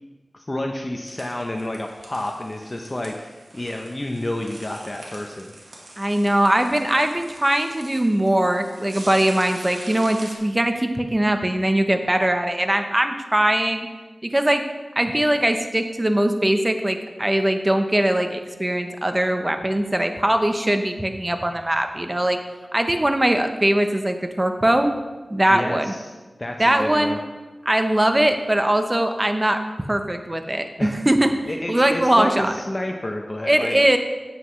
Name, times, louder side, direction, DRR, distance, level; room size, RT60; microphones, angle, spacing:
voice 1, 0.3-5.5 25.5-27.2 30.8-31.0 31.5-33.8, left 1 dB, 30° left, 2 dB, 0.7 m, -30 dB
sound 1, 1.0-10.4, right 1 dB, 85° right, 1.5 m, -44 dB
voice 2, 6.0-13.9 14.2-14.6 15.0-22.4 22.7-24.9 25.3-25.9 26.6-27.2 27.6-29.6 29.9-31.3 31.7-32.5 33.5-34.0, right 1 dB, 25° right, 7 dB, 0.8 m, -21 dB
9.7 x 7.6 x 3.2 m, 1.3 s
wide cardioid pair, 50°, 0 cm